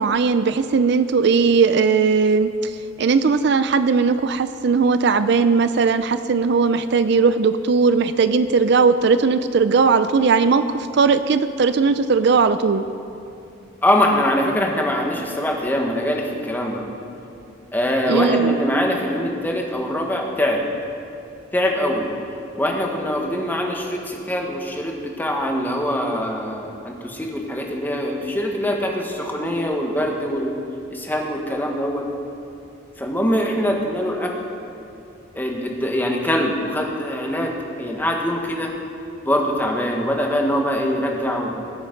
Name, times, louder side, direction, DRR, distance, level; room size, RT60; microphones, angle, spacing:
voice 1, 0.0-12.8 18.1-18.6, right 5 dB, 60° right, 12 dB, 0.4 m, -18 dB
voice 2, 13.8-16.8 17.7-20.6 21.5-22.1 22.5-30.6 30.9-32.1 33.0-34.3 35.3-37.5 37.8-38.7 39.2-41.7, equal, 10° left, 0 dB, 1.4 m, -23 dB
20.0 x 8.3 x 5.2 m, 2.7 s
head